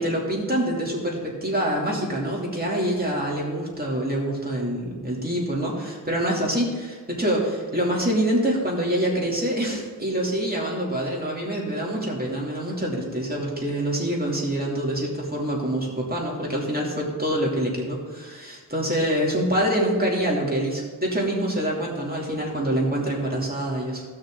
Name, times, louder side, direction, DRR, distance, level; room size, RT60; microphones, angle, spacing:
voice 1, 0.0-24.0, right 1 dB, 25° right, -4 dB, 2.8 m, -26 dB
15.5 x 6.4 x 3.8 m, 1.5 s
wide cardioid pair, 50°, 36 cm